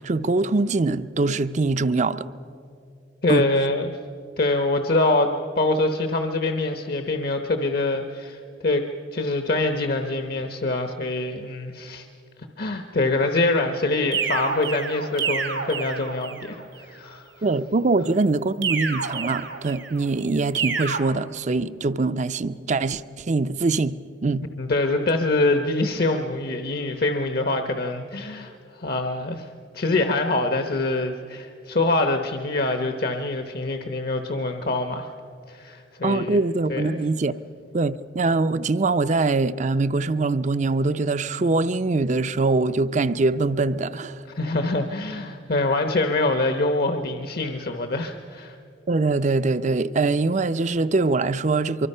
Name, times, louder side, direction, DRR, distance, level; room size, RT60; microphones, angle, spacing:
voice 1, 0.0-2.3 3.3-3.5 17.4-24.4 36.0-37.3 37.7-44.2 48.9-51.9, right 3 dB, 40° right, 0.5 m, -23 dB
voice 2, 3.2-3.9 4.4-8.8 9.1-12.1 12.6-17.3 24.6-29.5 29.7-35.1 35.5-36.4 36.7-37.0 44.3-48.6, left 2 dB, 55° left, 0.9 m, -24 dB
sound 1, 14.1-16.5 18.6-20.0 20.5-21.0, right 6 dB, 85° right, 3.0 m, -28 dB
24.5 x 23.5 x 5.6 m
head